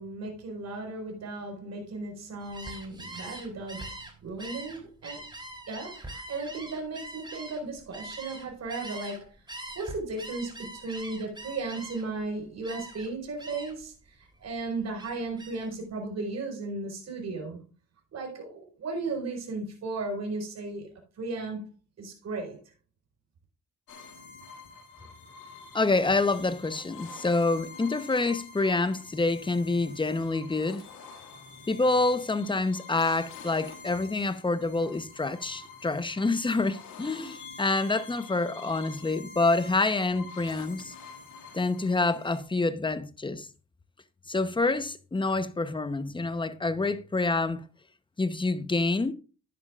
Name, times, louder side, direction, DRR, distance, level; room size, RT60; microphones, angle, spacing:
voice 1, 0.0-3.8 4.2-5.3 5.7-9.4 9.7-17.6 18.1-20.9 21.2-21.6 22.0-22.6, right 3 dB, 60° right, 4.9 m, -35 dB
Gull seagull, 2.4-9.2 9.5-12.2 12.6-13.1 13.4-13.9 14.2-15.7, right 2 dB, 15° right, 3.4 m, -43 dB
sound 1, 23.9-42.4, left 4 dB, 80° left, 2.3 m, -47 dB
voice 2, 25.7-30.8 31.7-40.9 41.5-43.5 44.3-47.6 48.2-49.1, left 3 dB, 15° left, 0.9 m, -27 dB
11.0 x 11.0 x 2.5 m
cardioid pair, 90°, 30 cm